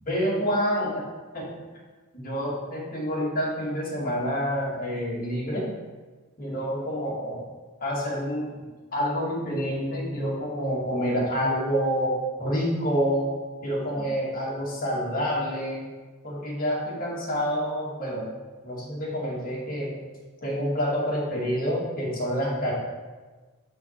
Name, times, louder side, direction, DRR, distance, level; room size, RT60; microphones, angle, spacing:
voice 1, 0.1-1.0 1.3-1.5 2.1-5.7 6.4-7.4 7.8-8.6 8.9-13.4 13.6-15.9 16.2-18.3 18.6-20.0 20.4-22.8, equal, 40° left, -5 dB, 2.1 m, -28 dB
6.1 x 6.0 x 4.6 m, 1.3 s
head